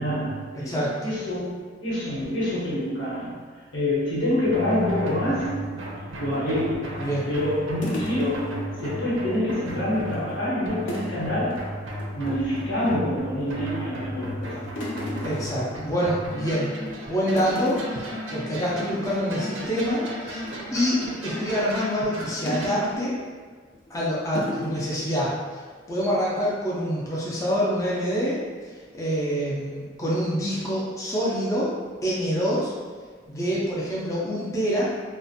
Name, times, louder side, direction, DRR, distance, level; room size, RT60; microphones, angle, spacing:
voice 1, 0.0-5.8 6.2-11.8 12.1-14.7, left 1 dB, 90° left, -8 dB, 1.0 m, -27 dB
voice 2, 0.5-1.0 7.0-7.3 15.2-16.7 17.1-17.8 18.3-23.2 23.9-25.6 25.9-28.4 28.9-31.7 32.0-32.7 33.3-34.9, equal, 15° left, -7 dB, 0.4 m, -26 dB
sound 1, 4.4-23.0, equal, 85° right, 0.5 m, -35 dB
sound 2, 6.3-8.9 9.2-9.4 9.7-10.3 10.9-11.2 11.5-11.7 12.0-12.8 13.4-13.9 14.2-16.4 16.7-17.0 17.3-18.1 18.5-18.7 18.9-19.2 19.6-21.4 22.5-23.2 23.7-23.9 24.4-24.8, left 1 dB, 70° left, 0.5 m, -36 dB
2.4 x 2.1 x 2.6 m, 1.5 s
head